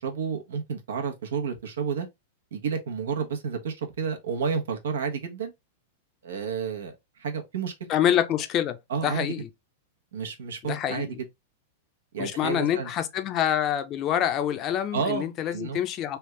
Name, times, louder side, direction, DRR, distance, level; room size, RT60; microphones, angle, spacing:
voice 1, 0.0-2.1 2.5-5.5 6.2-6.9 7.2-7.7 8.9-9.3 10.1-11.1 12.1-12.9 14.9-15.8, right 6 dB, 90° right, 1.0 m, -30 dB
voice 2, 7.9-8.8 9.0-9.5 10.6-11.2 12.2-16.2, left 10 dB, 30° left, 0.5 m, -26 dB
3.4 x 2.4 x 3.1 m
supercardioid pair, 145°, 0 cm